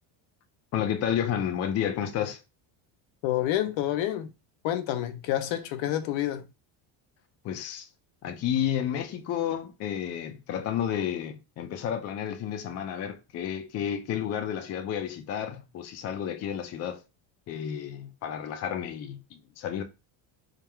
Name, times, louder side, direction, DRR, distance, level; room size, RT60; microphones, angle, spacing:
voice 1, 0.7-2.4 7.4-7.9 8.2-17.0 17.5-19.8, left 9 dB, 30° left, 0.5 m, -31 dB
voice 2, 3.2-4.3 4.6-6.5, left 12 dB, 70° left, 0.7 m, -28 dB
3.6 x 2.4 x 4.4 m
cardioid pair, 170°, 49 cm